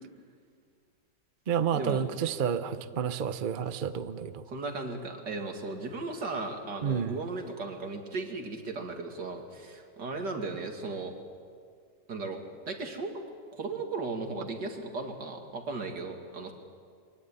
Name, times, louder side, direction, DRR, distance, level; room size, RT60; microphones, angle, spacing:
voice 1, 1.5-4.4 6.8-7.2, right 7 dB, 50° right, 11 dB, 0.6 m, -30 dB
voice 2, 4.5-11.1 12.1-13.2 13.5-16.5, right 3 dB, 70° right, 4 dB, 2.8 m, -36 dB
24.0 x 17.0 x 9.8 m, 2.1 s
omnidirectional pair, 1.9 m